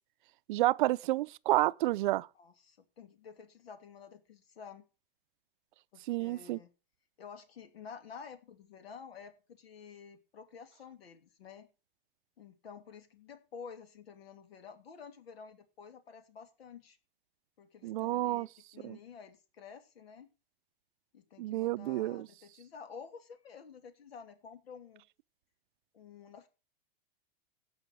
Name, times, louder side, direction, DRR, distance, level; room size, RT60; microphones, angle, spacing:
voice 1, 0.5-2.3 6.1-6.6 17.8-18.5 18.8-19.0 21.4-22.3, right 17 dB, 60° right, 0.5 m, -30 dB
voice 2, 2.3-4.8 5.9-6.7 7.2-11.7 12.4-17.0 17.6-20.3 21.1-25.0 25.9-26.5, left 6 dB, 90° left, 2.8 m, -51 dB
16.0 x 5.7 x 6.2 m
supercardioid pair, 145°, 29 cm